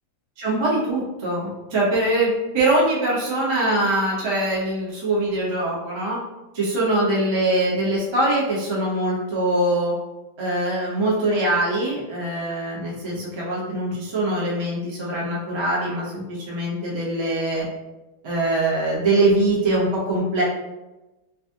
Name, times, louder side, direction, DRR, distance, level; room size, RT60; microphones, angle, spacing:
voice 1, 0.4-6.2 6.5-9.9 10.4-17.6 18.2-20.4, right 1 dB, 45° right, -6 dB, 0.3 m, -23 dB
4.0 x 2.3 x 2.8 m, 1.0 s
omnidirectional pair, 2.1 m